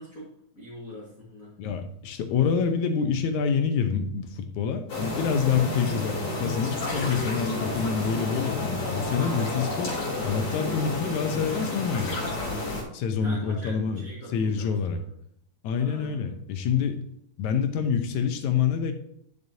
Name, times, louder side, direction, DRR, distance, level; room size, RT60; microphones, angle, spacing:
voice 1, 0.0-1.6 13.2-15.1 15.7-16.4, equal, 35° left, -4 dB, 1.6 m, -43 dB
voice 2, 1.6-12.2 12.9-14.0 14.3-15.0 15.6-17.0 17.4-18.9, left 6 dB, 80° left, 6 dB, 2.2 m, -27 dB
sound 1, 4.9-12.8, left 2 dB, 60° left, 4.1 m, -30 dB
10.5 x 6.6 x 2.8 m, 0.73 s
omnidirectional pair, 3.4 m